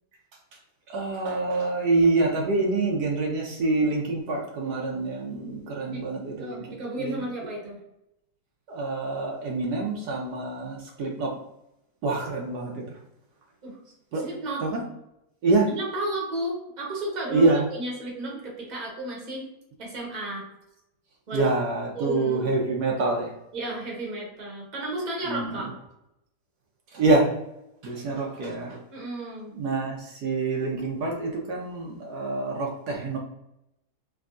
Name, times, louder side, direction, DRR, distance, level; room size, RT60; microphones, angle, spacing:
voice 1, 0.9-7.2 8.7-11.3 12.0-13.0 14.1-14.2 14.6-14.8 15.4-15.7 17.3-17.6 21.3-23.3 25.3-25.7 26.9-27.3 27.8-28.8 29.5-33.2, right 3 dB, 75° right, -1 dB, 1.2 m, -26 dB
voice 2, 6.4-7.8 13.6-13.8 14.1-14.6 15.7-19.5 19.8-20.4 21.3-21.5 21.9-22.6 23.5-25.7 28.9-29.5, right 1 dB, 30° right, -3 dB, 1.0 m, -33 dB
3.5 x 3.1 x 2.4 m, 0.84 s
omnidirectional pair, 1.8 m